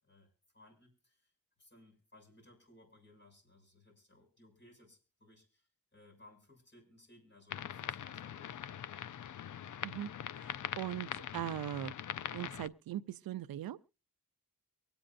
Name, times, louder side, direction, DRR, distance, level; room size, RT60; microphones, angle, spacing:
voice 1, 0.0-1.3 1.6-8.8, left 1 dB, 30° left, 6.4 m, -62 dB
sound 1, 7.5-12.7, left 10 dB, 60° left, 0.6 m, -42 dB
voice 2, 10.4-11.9 12.3-13.8, right 12 dB, 80° right, 0.5 m, -40 dB
24.0 x 8.9 x 2.6 m
cardioid pair, 85°, 35 cm